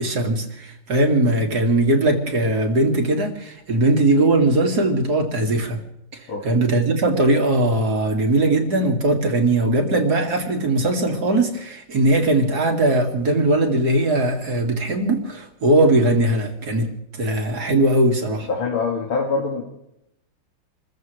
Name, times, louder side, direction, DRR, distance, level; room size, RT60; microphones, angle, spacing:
voice 1, 0.0-5.8 6.4-16.9 17.2-18.5, right 2 dB, 50° right, 3 dB, 2.7 m, -19 dB
voice 2, 18.5-19.6, left 4 dB, 85° left, 0 dB, 2.8 m, -24 dB
28.5 x 15.0 x 3.2 m, 0.81 s
omnidirectional pair, 2.2 m